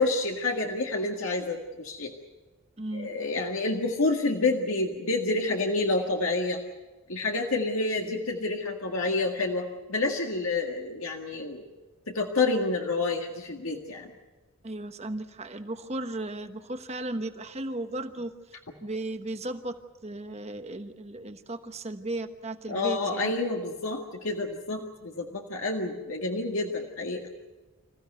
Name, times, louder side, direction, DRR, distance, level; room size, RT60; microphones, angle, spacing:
voice 1, 0.0-2.1 2.9-6.6 7.1-11.6 12.1-14.1 22.7-27.2, left 3 dB, 75° left, 1 dB, 1.9 m, -28 dB
voice 2, 2.8-3.1 14.6-18.3 18.8-23.3, right 2 dB, 30° right, 8 dB, 1.2 m, -35 dB
26.5 x 15.5 x 9.3 m, 1.2 s
head